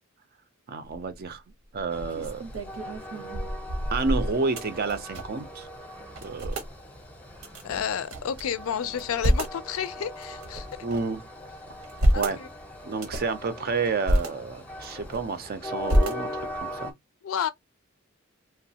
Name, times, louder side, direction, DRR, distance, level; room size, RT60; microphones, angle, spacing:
voice 1, 0.7-1.4 1.7-2.4 3.9-5.7 6.2-6.6 10.8-11.2 12.2-12.4 12.8-16.9, right 4 dB, 45° right, 0.5 m, -30 dB
sound 1, 0.8-1.2 1.7-5.5 5.7-5.8 6.1-6.7 7.4-8.4 8.9-9.6 10.2-11.2 11.7-12.4 12.9-13.4 13.8-14.3 14.8-15.4 15.9-16.6, equal, 80° right, 0.8 m, -28 dB
Train, 1.9-16.9, left 1 dB, 10° left, 0.7 m, -41 dB
voice 2, 7.6-10.7 12.1-12.5 17.2-17.5, left 8 dB, 70° left, 0.4 m, -31 dB
3.0 x 2.3 x 2.7 m
head